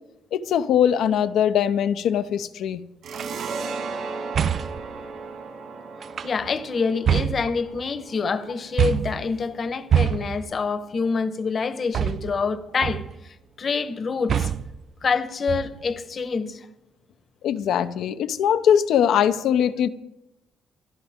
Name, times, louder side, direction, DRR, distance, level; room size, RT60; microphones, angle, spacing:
voice 1, 0.3-2.8 17.4-19.9, left 9 dB, 80° left, 0.8 m, -21 dB
sound 1, 3.0-10.2, right 4 dB, 75° right, 7.1 m, -36 dB
sound 2, 3.1-3.4 4.3-4.9 6.0-6.6 7.1-8.0 8.8-9.3 9.9-10.5 11.9-12.5 12.8-13.3 14.3-14.8 15.5-16.0, right 9 dB, 55° right, 0.5 m, -25 dB
voice 2, 6.2-14.5 15.0-16.6, left 5 dB, 45° left, 1.1 m, -26 dB
26.0 x 12.0 x 3.7 m
cardioid pair, 90°, 0 cm